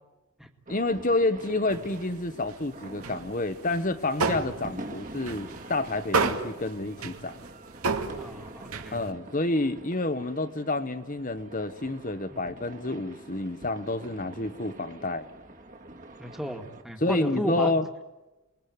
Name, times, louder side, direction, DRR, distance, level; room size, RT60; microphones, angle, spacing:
voice 1, 0.7-7.4 8.9-15.3 17.0-17.9, left 2 dB, 35° left, 1.3 m, -29 dB
sound 1, 0.7-16.8, right 1 dB, 35° right, 2.3 m, -46 dB
sound 2, 1.7-2.7 3.0-9.1, right 4 dB, 80° right, 2.4 m, -32 dB
voice 2, 8.2-9.1 12.3-12.4 16.2-17.7, equal, ahead, 2.0 m, -34 dB
29.5 x 21.0 x 9.5 m
head